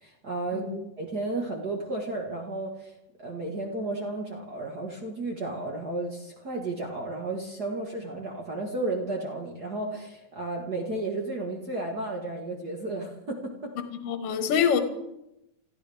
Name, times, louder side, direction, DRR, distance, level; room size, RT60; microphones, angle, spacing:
voice 1, 0.0-0.7 1.0-2.9 3.2-13.7, right 2 dB, 45° right, 0 dB, 1.3 m, -33 dB
voice 2, 14.0-14.8, left 7 dB, 50° left, 6 dB, 2.2 m, -25 dB
28.0 x 14.5 x 3.5 m, 0.87 s
omnidirectional pair, 4.0 m